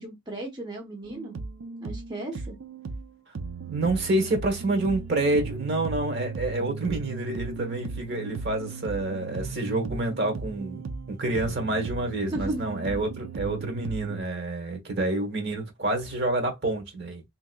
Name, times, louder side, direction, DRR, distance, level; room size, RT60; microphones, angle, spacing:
voice 1, 0.0-1.3 1.8-2.6 7.6-7.7 12.3-12.6, right 1 dB, 20° right, 0.8 m, -35 dB
sound 1, 1.0-14.2, right 4 dB, 90° right, 0.5 m, -36 dB
voice 2, 3.7-10.8 11.1-17.2, right 2 dB, 55° right, 1.1 m, -28 dB
3.6 x 2.9 x 2.2 m
head